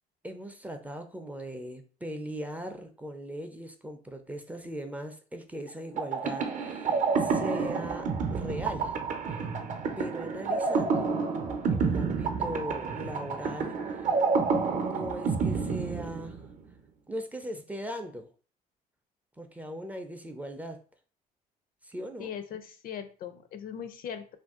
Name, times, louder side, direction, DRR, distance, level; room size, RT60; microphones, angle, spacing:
voice 1, 0.2-9.0 9.3-9.4 10.0-11.2 11.7-14.2 14.7-16.4 17.1-18.3 19.4-20.8 21.8-22.3, equal, 10° right, 5 dB, 0.4 m, -39 dB
sound 1, 6.0-16.6, right 5 dB, 50° right, 0.6 m, -29 dB
voice 2, 22.2-24.4, left 8 dB, 60° left, 9 dB, 0.5 m, -39 dB
2.5 x 2.3 x 3.5 m, 0.39 s
cardioid pair, 110°, 17 cm